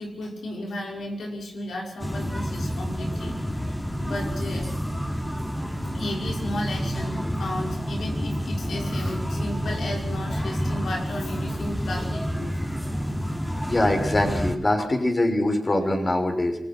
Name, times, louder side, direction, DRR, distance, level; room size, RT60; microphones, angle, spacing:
voice 1, 0.0-3.4 4.0-4.7 5.9-12.6, left 1 dB, 90° left, 1 dB, 5.5 m, -34 dB
sound 1, 2.0-14.6, equal, 10° left, 3.4 m, -29 dB
voice 2, 13.6-16.6, left 1 dB, 40° left, 5 dB, 6.1 m, -23 dB
27.5 x 20.5 x 6.2 m, 0.69 s
cardioid pair, 50°, 0 cm